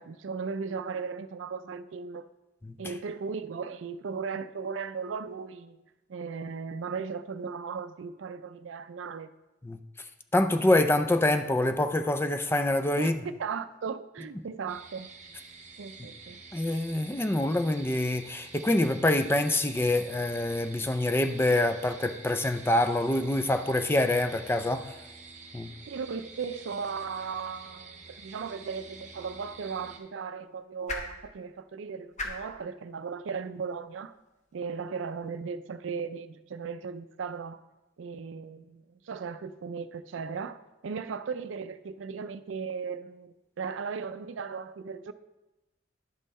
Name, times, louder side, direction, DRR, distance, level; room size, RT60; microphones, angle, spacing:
voice 1, 0.0-2.3 2.8-5.8 6.1-9.3 13.0-13.1 13.4-15.1 15.8-16.4 25.9-34.2 34.5-37.6 38.0-45.1, right 5 dB, 80° right, 0.4 m, -37 dB
voice 2, 10.3-13.2 16.5-24.9 25.5-25.7, left 1 dB, 10° left, 0.4 m, -26 dB
sound 1, 14.7-30.0, right 4 dB, 40° right, 1.1 m, -48 dB
sound 2, 29.1-35.3, left 2 dB, 40° left, 1.0 m, -45 dB
11.0 x 5.5 x 4.1 m
head